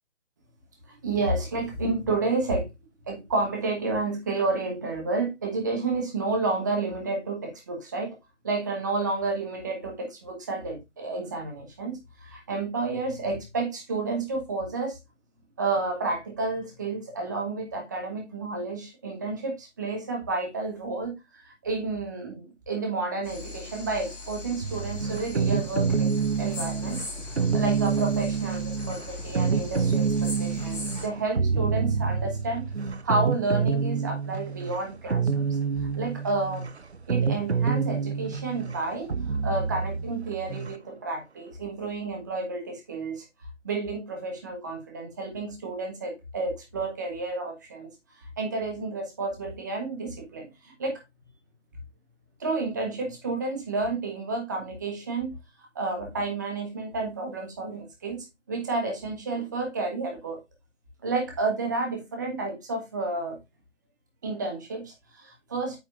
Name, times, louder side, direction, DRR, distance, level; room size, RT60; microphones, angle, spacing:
voice 1, 0.9-2.7 3.1-8.2 8.4-15.0 15.6-26.1 26.4-35.6 36.0-36.7 37.1-43.2 43.6-47.9 48.4-51.0 52.4-55.3 55.7-60.4 61.0-63.4 64.2-65.8, right 3 dB, 15° right, 1.1 m, -31 dB
sound 1, 23.2-31.1, left 3 dB, 5° left, 3.0 m, -39 dB
sound 2, 24.6-40.8, right 5 dB, 65° right, 0.8 m, -27 dB
8.9 x 5.8 x 2.4 m
figure-of-eight pair, 155°, 36 cm